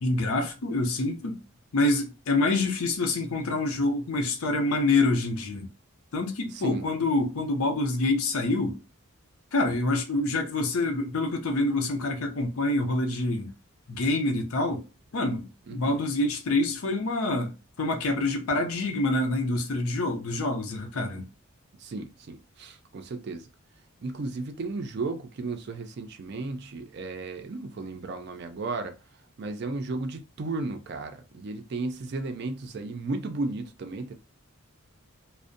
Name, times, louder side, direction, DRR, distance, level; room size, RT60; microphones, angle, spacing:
voice 1, 0.0-1.4 1.7-5.7 6.1-8.8 9.5-13.5 13.9-14.8 15.1-21.3, left 2 dB, 85° left, 0.6 m, -26 dB
voice 2, 6.5-6.8 15.7-16.0 21.8-23.5 24.0-29.0 29.4-34.1, right 3 dB, 50° right, 0.3 m, -34 dB
2.5 x 2.0 x 2.5 m
head